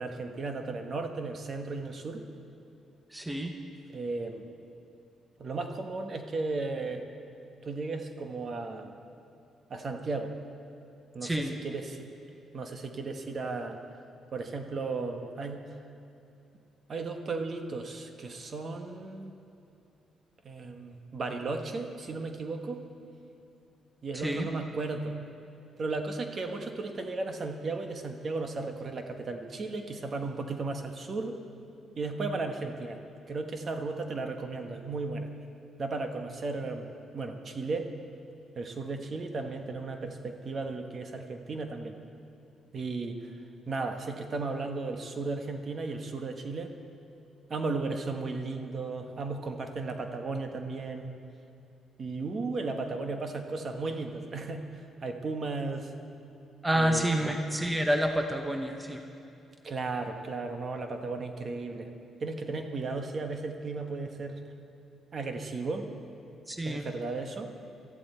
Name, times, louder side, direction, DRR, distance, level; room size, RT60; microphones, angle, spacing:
voice 1, 0.0-2.2 3.9-4.4 5.4-7.1 7.6-8.9 9.7-10.3 11.1-12.1 12.5-13.8 14.3-15.6 16.9-19.3 20.4-22.8 24.0-25.2 25.8-31.4 32.0-33.0 33.3-35.3 35.8-36.9 37.1-37.9 38.5-42.0 42.7-43.3 43.7-46.7 47.5-51.1 52.0-54.6 55.0-55.9 56.7-57.3 59.6-61.9 62.2-64.4 65.1-65.9 66.6-67.5, right 3 dB, 40° right, 5 dB, 1.2 m, -35 dB
voice 2, 3.1-3.5 11.2-11.5 24.1-24.5 56.6-59.0 66.5-66.9, right 1 dB, 10° right, 4 dB, 0.9 m, -28 dB
19.5 x 13.5 x 4.4 m, 2.7 s
cardioid pair, 120°, 0 cm